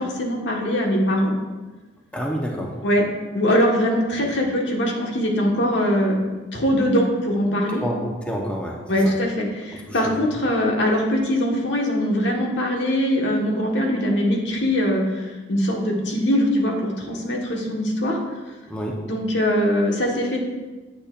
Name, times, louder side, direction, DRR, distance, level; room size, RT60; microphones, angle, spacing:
voice 1, 0.0-1.3 2.8-3.0 3.3-6.2 6.5-7.8 8.9-18.2 19.1-20.4, equal, 75° left, -1 dB, 1.5 m, -22 dB
voice 2, 2.1-2.8 7.8-8.8 9.0-9.1 9.9-10.0 18.7-19.0, equal, 5° left, -2 dB, 0.9 m, -28 dB
9.6 x 8.4 x 2.5 m, 1.2 s
head